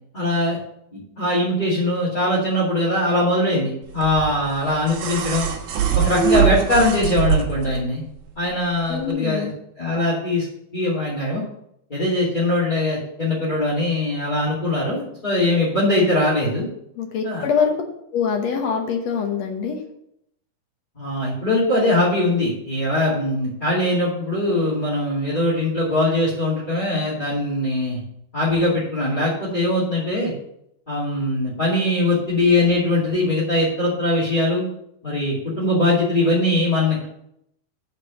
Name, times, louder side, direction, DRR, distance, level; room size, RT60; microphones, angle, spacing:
voice 1, 0.1-0.6 0.9-5.5 5.9-8.0 8.4-9.5 9.8-10.5 10.7-11.4 11.9-16.7 17.2-17.4 21.0-28.0 28.3-30.3 30.9-34.6 35.0-37.0, left 1 dB, 15° left, -10 dB, 2.0 m, -21 dB
sound 1, 4.0-7.8 9.0-9.1, right 7 dB, 75° right, 2.7 m, -22 dB
voice 2, 8.9-9.5 17.0-17.7 18.1-19.8, left 6 dB, 65° left, 3 dB, 2.0 m, -24 dB
8.2 x 4.6 x 7.0 m, 0.75 s
omnidirectional pair, 3.8 m